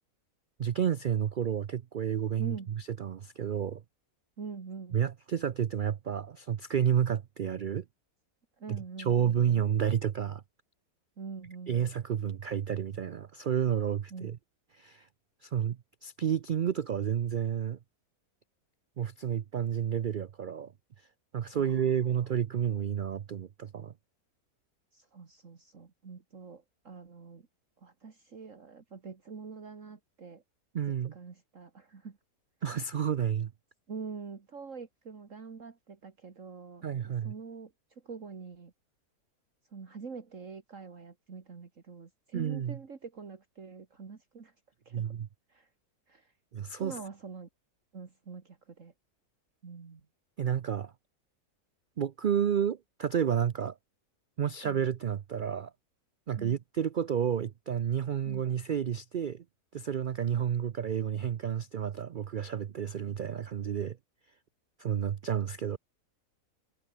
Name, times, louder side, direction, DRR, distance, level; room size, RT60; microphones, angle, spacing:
voice 1, 0.6-3.8 4.9-7.8 8.7-10.4 11.7-14.4 14.7-15.1 15.4-17.8 19.0-20.7 21.3-23.9 30.7-31.1 32.6-33.5 36.8-37.3 42.3-42.8 44.9-45.3 46.5-46.9 50.4-50.9 52.0-53.7 54.4-55.7 56.3-59.4 59.7-64.0 64.8-65.8, right 8 dB, 80° right, 0.4 m, -30 dB
voice 2, 2.4-2.7 4.4-5.0 8.6-9.6 11.2-11.8 14.1-14.3 21.5-22.2 24.9-27.5 27.8-30.4 31.1-32.2 33.9-38.7 39.7-44.5 44.9-45.2 45.5-45.7 46.1-46.3 46.8-47.5 47.9-48.9 49.6-50.0 56.4-56.6 58.3-58.5, right 5 dB, 55° right, 2.3 m, -45 dB
omnidirectional pair, 1.6 m